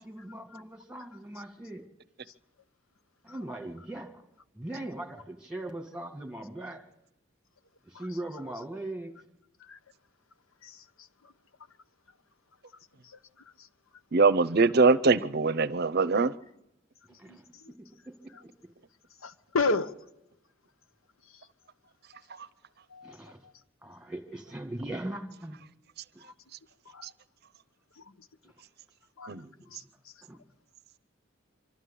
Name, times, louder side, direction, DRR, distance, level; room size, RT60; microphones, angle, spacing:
voice 1, 0.0-1.8 3.2-4.2 4.5-6.8 7.9-9.1 17.2-17.4 17.8-18.3 23.0-23.4 23.8-25.6 29.3-29.7 30.3-30.4, right 1 dB, 5° right, 2.2 m, -40 dB
voice 2, 14.1-16.3 22.3-22.5 27.0-27.1 29.3-29.5, right 4 dB, 50° right, 0.6 m, -23 dB
voice 3, 19.2-19.9 22.9-23.1 26.2-26.3 26.9-27.1 28.0-28.1 29.2-29.3 29.7-29.8, left 3 dB, 90° left, 1.0 m, -32 dB
25.0 x 13.0 x 8.5 m
head